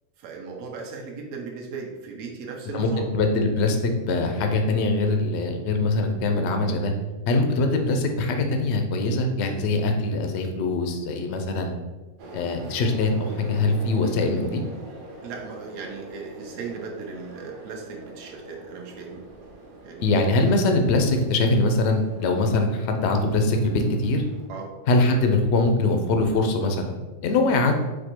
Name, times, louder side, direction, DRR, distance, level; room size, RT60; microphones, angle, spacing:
voice 1, 0.2-3.1 15.2-19.2 19.8-20.2 24.5-24.7, right 4 dB, 75° right, 1 dB, 1.2 m, -37 dB
voice 2, 2.7-6.9 7.3-11.7 12.3-14.6 20.0-24.2 24.9-27.8, left 2 dB, 60° left, 5 dB, 0.8 m, -22 dB
sound 1, 12.2-24.5, right 2 dB, 55° right, 0.6 m, -43 dB
4.3 x 2.6 x 4.3 m, 1.2 s
omnidirectional pair, 1.5 m